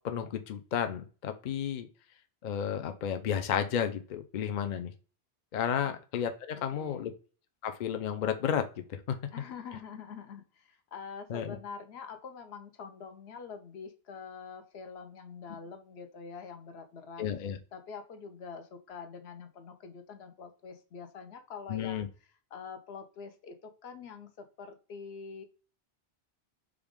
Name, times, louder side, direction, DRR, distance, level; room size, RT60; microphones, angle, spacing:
voice 1, 0.0-1.9 2.4-4.9 5.5-7.1 7.6-8.6 8.9-9.2 11.3-11.6 17.2-17.6 21.7-22.1, left 8 dB, 55° left, 7 dB, 0.5 m, -32 dB
voice 2, 6.7-7.1 9.3-17.3 17.7-22.1 22.5-25.4, left 5 dB, 75° left, 7 dB, 0.9 m, -45 dB
4.9 x 2.4 x 3.5 m, 0.37 s
omnidirectional pair, 1.1 m